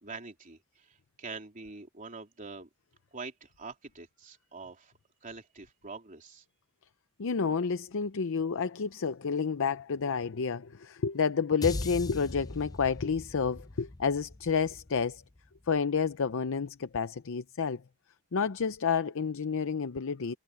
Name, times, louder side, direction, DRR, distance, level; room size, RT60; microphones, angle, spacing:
voice 1, 0.0-2.7 3.1-4.9 5.2-6.4, right 4 dB, 35° right, 3.5 m, -45 dB
voice 2, 7.2-15.2 15.7-17.8 18.3-20.3, left 5 dB, 60° left, 0.6 m, -30 dB
sound 1, 11.6-16.0, left 2 dB, 15° left, 0.5 m, -40 dB
head